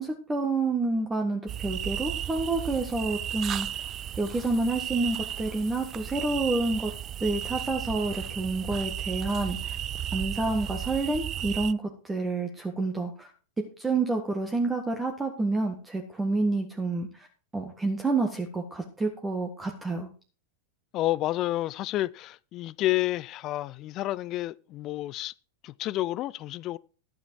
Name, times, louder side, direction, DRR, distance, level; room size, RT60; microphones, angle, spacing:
voice 1, 0.0-3.8 4.2-6.9 7.2-9.8 10.1-13.3 13.6-17.3 17.5-20.1, right 3 dB, 10° right, 1.6 m, -29 dB
sound 1, 1.5-11.7, right 10 dB, 30° right, 0.4 m, -34 dB
voice 2, 20.9-25.3 25.6-26.8, left 15 dB, 35° left, 0.4 m, -30 dB
12.5 x 8.2 x 4.6 m
figure-of-eight pair, 90°, 0 cm